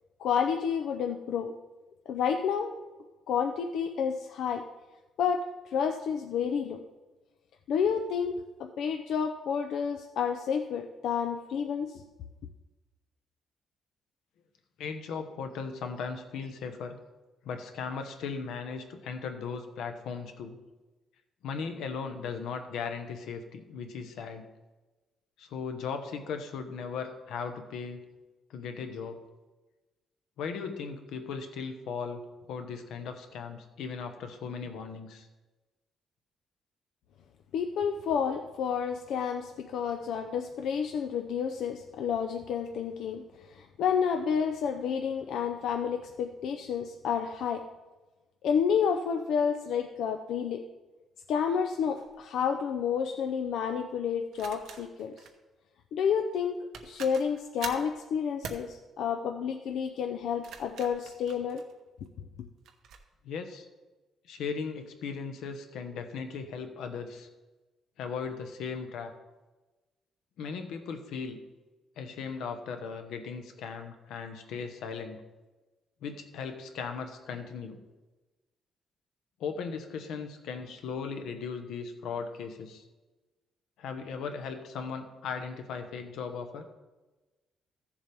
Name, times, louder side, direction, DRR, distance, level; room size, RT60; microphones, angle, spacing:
voice 1, 0.2-1.5 2.1-2.7 3.3-4.6 5.2-6.8 7.7-12.0 37.5-47.6 48.4-50.6 51.3-55.2 55.9-61.6 62.4-62.5, left 7 dB, 65° left, 5 dB, 0.5 m, -30 dB
voice 2, 14.8-17.0 17.4-20.6 21.4-24.5 25.4-28.0 28.5-29.2 30.4-32.2 32.5-35.3 63.2-63.7 64.3-67.3 68.0-69.1 70.4-71.4 72.0-75.2 76.0-77.8 79.4-82.8 83.8-86.7, left 5 dB, 90° left, 6 dB, 1.1 m, -37 dB
sound 1, 52.0-52.2 54.3-55.4 56.4-56.5 56.7-57.9 58.4-58.7 60.2-62.1 62.7-63.0, right 6 dB, 65° right, 1.0 m, -44 dB
14.5 x 7.3 x 3.5 m, 1.2 s
cardioid pair, 180°, 0 cm